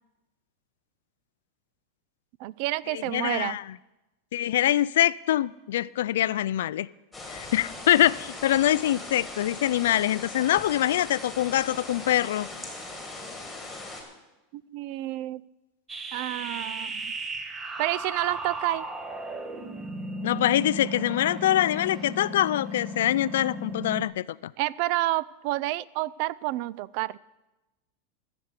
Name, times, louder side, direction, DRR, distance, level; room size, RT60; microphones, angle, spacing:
voice 1, 2.4-3.6 14.5-15.4 16.1-17.1 17.8-18.9 24.6-27.2, right 17 dB, 45° right, 21 dB, 0.3 m, -29 dB
voice 2, 2.9-3.7 4.3-6.9 7.3-12.5 20.2-24.5, left 13 dB, 80° left, 20 dB, 0.3 m, -24 dB
sound 1, 7.1-14.0, left 2 dB, 5° left, 2.1 m, -40 dB
sound 2, 15.9-24.0, right 1 dB, 15° right, 0.8 m, -36 dB
13.5 x 7.0 x 8.2 m, 1.0 s
supercardioid pair, 170°, 0 cm